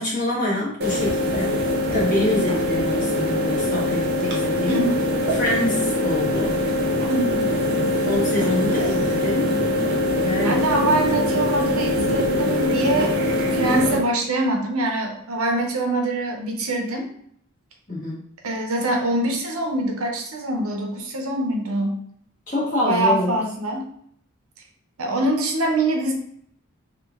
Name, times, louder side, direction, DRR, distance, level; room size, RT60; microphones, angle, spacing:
voice 1, 0.0-1.6 1.9-4.8 5.3-6.5 8.0-9.5 10.2-10.6 17.9-18.2 22.5-23.3, left 1 dB, 40° left, -5 dB, 1.3 m, -26 dB
sound 1, 0.8-14.0, left 1 dB, 50° right, 0.7 m, -22 dB
voice 2, 4.6-4.9 7.1-7.6 8.7-8.9 10.4-13.1 13.5-17.1 18.4-22.0 22.8-23.9 25.0-26.1, right 1 dB, 85° right, 2 dB, 0.7 m, -24 dB
3.0 x 2.4 x 3.5 m, 0.67 s
head